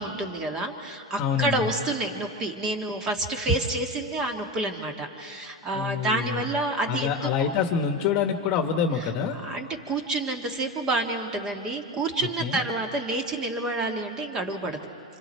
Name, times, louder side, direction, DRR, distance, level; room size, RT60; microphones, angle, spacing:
voice 1, 0.0-7.3 9.0-9.1 9.4-14.8, right 2 dB, 20° right, 4 dB, 1.7 m, -29 dB
voice 2, 1.2-1.7 5.7-6.5 6.9-9.4 12.4-12.6, left 7 dB, 35° left, 6 dB, 1.3 m, -26 dB
26.0 x 26.0 x 4.4 m, 2.6 s
hypercardioid pair, 140°, 3 cm